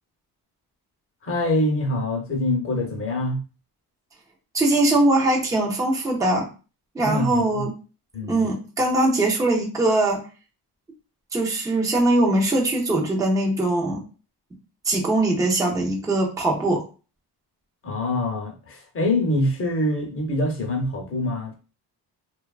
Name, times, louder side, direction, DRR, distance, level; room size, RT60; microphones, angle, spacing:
voice 1, 1.2-3.4 7.0-7.7 8.1-8.4 17.8-21.5, left 1 dB, 35° left, 0.6 m, -25 dB
voice 2, 4.5-6.5 6.9-7.7 8.3-10.2 11.3-14.0 14.8-16.8, right 2 dB, 10° right, 0.4 m, -21 dB
2.9 x 2.2 x 2.3 m
cardioid pair, 170°, 39 cm